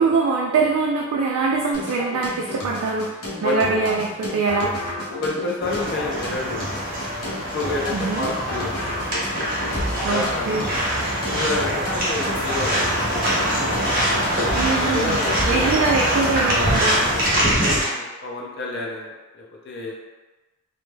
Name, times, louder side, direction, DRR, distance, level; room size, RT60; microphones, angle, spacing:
voice 1, 0.0-4.8 7.9-8.3 10.0-10.6 14.6-15.2 15.5-17.1, right 4 dB, 85° right, -1 dB, 0.3 m, -23 dB
sound 1, 1.7-17.7, left 1 dB, 90° left, 0.7 m, -32 dB
voice 2, 5.2-7.0 7.5-9.1 9.9-10.5 11.3-14.1 14.7-15.8 17.4-19.9, left 2 dB, 50° left, -2 dB, 0.3 m, -30 dB
sound 2, 5.6-17.8, equal, 40° right, 0.8 m, -24 dB
2.1 x 2.0 x 3.1 m, 1.2 s
head